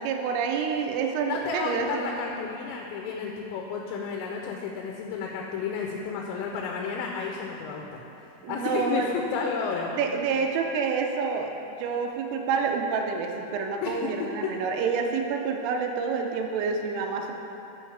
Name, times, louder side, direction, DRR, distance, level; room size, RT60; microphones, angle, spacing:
voice 1, 0.0-2.3 8.4-9.1 9.9-17.3, right 5 dB, 85° right, 3 dB, 3.1 m, -28 dB
voice 2, 1.3-8.0 8.5-10.0 13.8-14.6, left 5 dB, 85° left, 0 dB, 3.2 m, -32 dB
13.0 x 5.5 x 3.3 m, 2.9 s
omnidirectional pair, 5.8 m